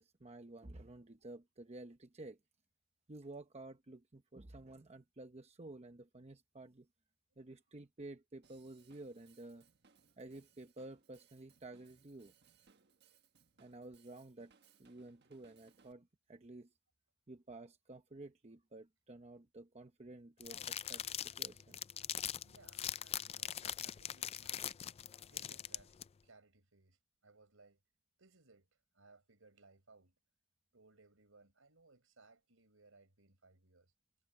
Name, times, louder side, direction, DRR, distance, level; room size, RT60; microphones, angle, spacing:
voice 1, 0.0-2.4 3.1-6.9 7.4-9.6 10.2-12.3 13.6-14.5 14.8-16.7 17.3-21.8, right 2 dB, 30° right, 0.9 m, -52 dB
Drum kit / Drum, 8.4-15.9, right 6 dB, 55° right, 1.4 m, -70 dB
sound 1, 20.4-26.0, left 10 dB, 30° left, 0.4 m, -41 dB
voice 2, 22.4-24.7 25.3-26.0 26.2-27.8 28.2-28.7 28.9-30.1 30.7-33.9, right 3 dB, 75° right, 4.5 m, -65 dB
head